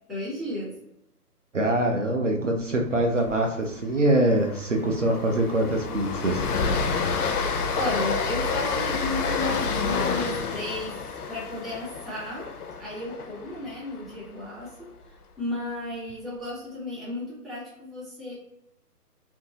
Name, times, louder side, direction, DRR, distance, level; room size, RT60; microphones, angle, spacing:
voice 1, 0.1-0.7 7.7-11.0 11.3-12.5 12.8-14.7 15.4-18.4, left 1 dB, ahead, -8 dB, 0.4 m, -33 dB
voice 2, 1.5-6.4, right 1 dB, 55° right, 1 dB, 0.5 m, -24 dB
Train, 3.0-3.3 3.6-3.7 4.1-14.2, left 5 dB, 70° left, 0.5 m, -29 dB
2.7 x 2.6 x 2.7 m, 0.84 s
hypercardioid pair, 180°, 47 cm